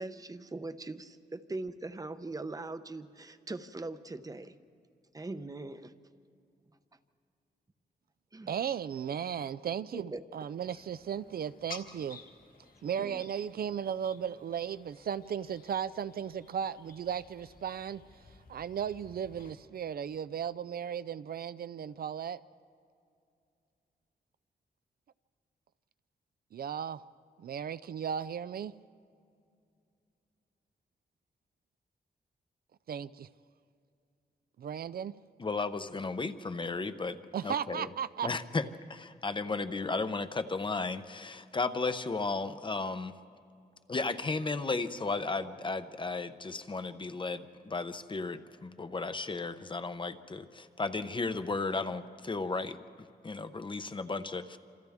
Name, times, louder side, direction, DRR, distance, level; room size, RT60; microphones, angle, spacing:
voice 1, 0.0-4.6 5.1-5.9 8.3-8.5 9.9-10.2 13.0-13.3, right 2 dB, 20° right, 11 dB, 0.7 m, -41 dB
voice 2, 8.5-12.2 12.8-18.0 18.5-22.4 26.5-27.0 27.4-28.7 32.9-33.3 34.6-35.1 37.3-38.3, right 8 dB, 65° right, 15 dB, 0.4 m, -36 dB
sound 1, 10.6-19.5, left 4 dB, 55° left, 1.7 m, -54 dB
voice 3, 35.4-37.2 37.4-37.9 38.2-38.6 38.9-43.1 43.9-52.8 53.2-54.6, left 3 dB, 30° left, 10 dB, 0.7 m, -34 dB
27.5 x 27.5 x 3.6 m, 2.5 s
wide cardioid pair, 130°, 17 cm